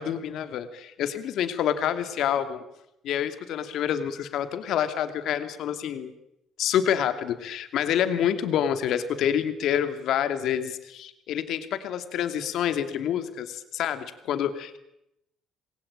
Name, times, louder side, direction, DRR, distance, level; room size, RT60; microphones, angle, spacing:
voice 1, 0.0-2.6 3.0-6.1 6.6-14.8, left 9 dB, 55° left, 9 dB, 2.7 m, -27 dB
27.5 x 21.5 x 8.9 m, 0.83 s
cardioid pair, 180°, 0 cm